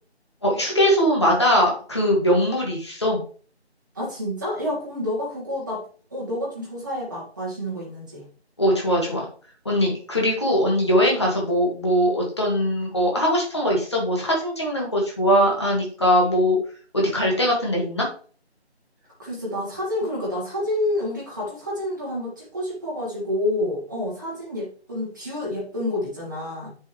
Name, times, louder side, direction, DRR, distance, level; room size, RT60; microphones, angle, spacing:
voice 1, 0.4-3.2 8.6-9.3 9.7-16.6 16.9-18.1, equal, 25° left, -2 dB, 1.9 m, -21 dB
voice 2, 3.9-5.9 6.1-8.2 19.2-26.7, left 1 dB, 15° right, -6 dB, 2.0 m, -28 dB
9.3 x 5.5 x 3.2 m, 0.42 s
figure-of-eight pair, 170°, 34 cm